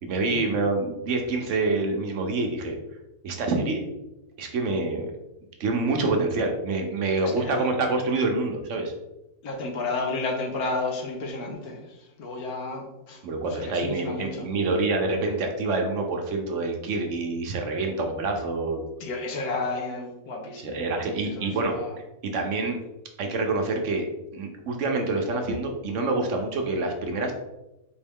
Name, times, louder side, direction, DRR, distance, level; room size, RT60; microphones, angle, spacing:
voice 1, 0.0-2.8 3.2-3.8 4.4-5.1 5.6-8.9 13.2-18.8 20.6-21.7 22.2-22.8 23.2-24.1 24.3-27.3, right 3 dB, 60° right, 3 dB, 1.0 m, -26 dB
voice 2, 7.2-7.7 9.4-11.8 12.2-13.2 13.5-14.5 19.0-21.9, left 3 dB, 85° left, 1 dB, 1.4 m, -32 dB
4.5 x 3.1 x 3.5 m, 0.95 s
omnidirectional pair, 1.6 m